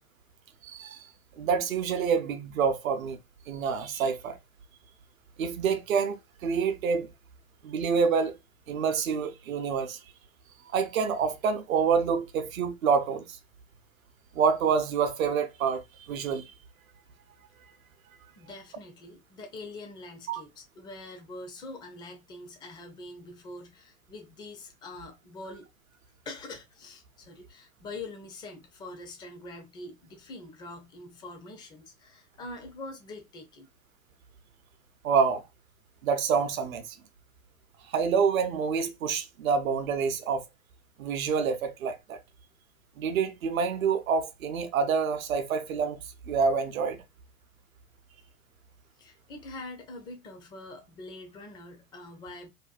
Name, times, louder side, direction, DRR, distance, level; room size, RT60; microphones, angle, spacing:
voice 1, 0.6-1.1 1.4-3.2 3.5-4.4 5.4-6.2 6.4-7.1 7.6-8.4 8.7-10.0 10.7-13.4 14.3-16.5 20.3-20.4 35.0-35.4 36.0-37.0 37.9-40.4 41.0-42.2 43.0-46.0 46.3-47.0, right 6 dB, 70° right, 0.7 m, -27 dB
voice 2, 18.4-25.7 26.3-33.7 49.0-52.5, left 2 dB, 10° left, 0.3 m, -44 dB
2.6 x 2.2 x 2.4 m
hypercardioid pair, 100°, 42 cm